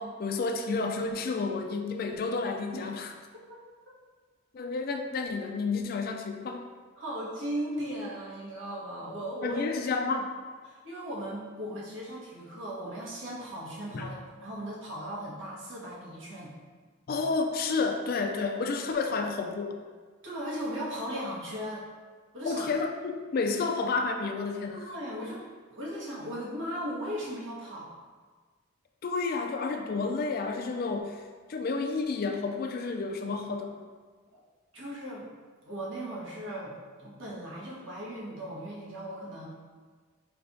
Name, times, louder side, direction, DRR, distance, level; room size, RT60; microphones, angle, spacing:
voice 1, 0.0-3.1 4.5-6.7 9.4-10.3 13.9-14.1 17.1-19.8 22.4-24.9 29.0-31.2 31.5-33.8, left 4 dB, 50° left, 4 dB, 0.3 m, -30 dB
voice 2, 7.0-9.6 10.7-16.5 20.2-21.8 22.3-22.7 24.7-27.9 34.3-34.4 34.7-35.3 35.6-36.7 37.0-39.5, equal, 75° right, -6 dB, 1.3 m, -37 dB
4.6 x 3.3 x 2.6 m, 1.5 s
head